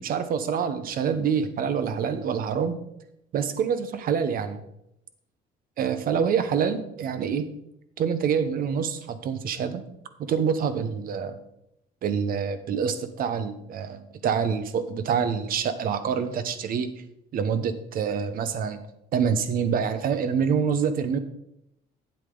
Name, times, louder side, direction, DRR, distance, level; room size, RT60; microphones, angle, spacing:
voice 1, 0.0-2.8 3.3-4.6 5.8-7.4 8.0-9.8 10.2-11.4 12.0-16.9 17.3-18.8 19.1-21.2, right 7 dB, 60° right, 11 dB, 1.0 m, -26 dB
9.2 x 8.3 x 3.8 m, 0.81 s
cardioid pair, 110°, 17 cm